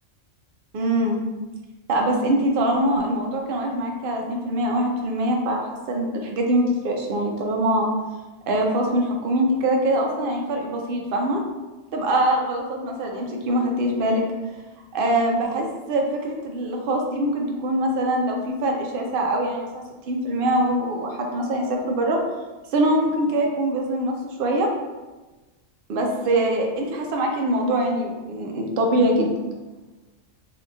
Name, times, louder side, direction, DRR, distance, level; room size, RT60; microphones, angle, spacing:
voice 1, 0.7-1.3 1.9-5.6 5.9-7.9 8.5-11.4 11.9-14.2 14.9-22.2 22.7-24.7 25.9-29.3, right 1 dB, 55° right, 1 dB, 0.7 m, -23 dB
2.8 x 2.8 x 3.4 m, 1.2 s
omnidirectional pair, 1.2 m